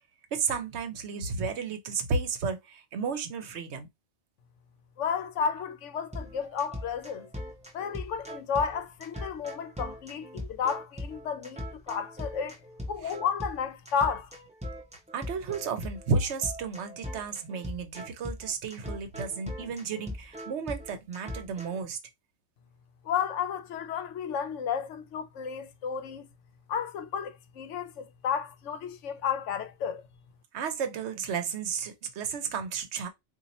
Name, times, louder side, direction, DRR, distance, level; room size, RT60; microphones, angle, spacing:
voice 1, 0.3-3.9 13.0-13.1 15.1-22.0 30.5-33.1, right 5 dB, 65° right, 0.9 m, -32 dB
voice 2, 5.0-7.3 7.7-12.6 12.9-14.3 23.0-26.3 26.7-30.0, left 7 dB, 75° left, 0.9 m, -32 dB
sound 1, 6.1-21.8, left 1 dB, 10° right, 0.6 m, -40 dB
2.8 x 2.5 x 4.0 m
omnidirectional pair, 1.3 m